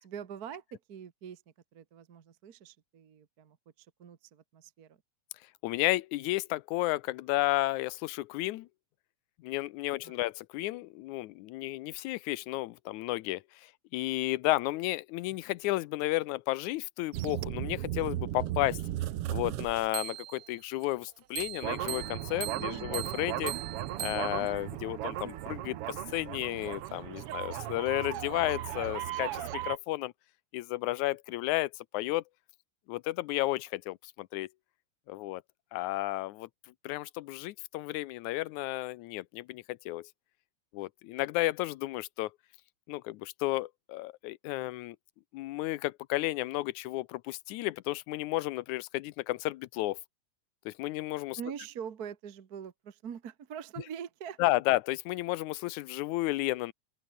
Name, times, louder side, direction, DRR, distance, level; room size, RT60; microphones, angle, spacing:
voice 1, 0.0-1.4 1.7-5.0 10.0-10.2 22.5-23.2 51.4-54.4, right 8 dB, 45° right, 1.3 m, -44 dB
voice 2, 5.6-8.7 9.4-18.8 19.3-23.5 24.0-30.1 30.5-32.2 32.9-34.5 35.1-35.4 35.7-36.5 36.8-40.1 40.7-42.3 42.9-45.0 45.3-50.0 50.7-51.4 54.4-56.7, left 18 dB, 90° left, 2.1 m, -32 dB
sound 1, 17.1-20.5 21.4-29.8, right 13 dB, 65° right, 1.6 m, -36 dB
Slam / Wood, 20.6-24.6 25.0-25.1, left 8 dB, 75° left, 3.7 m, -62 dB
open air
omnidirectional pair, 3.3 m